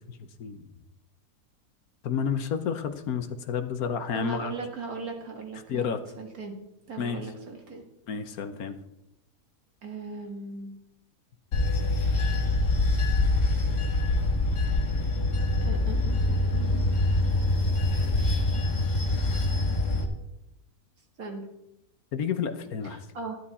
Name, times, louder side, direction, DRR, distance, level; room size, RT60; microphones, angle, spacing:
voice 1, 0.1-0.6 2.0-4.5 5.7-6.0 7.0-7.2 8.1-8.8 22.1-23.0, left 7 dB, 65° left, 9 dB, 1.3 m, -30 dB
voice 2, 4.1-5.9 6.2-6.6 6.9-7.8 9.8-10.8 15.6-17.0 21.2-21.5 22.8-23.4, right 4 dB, 60° right, 2 dB, 2.3 m, -38 dB
Bell / Train, 11.5-20.0, left 2 dB, 85° left, 2.0 m, -25 dB
12.0 x 11.5 x 4.2 m, 0.88 s
omnidirectional pair, 1.7 m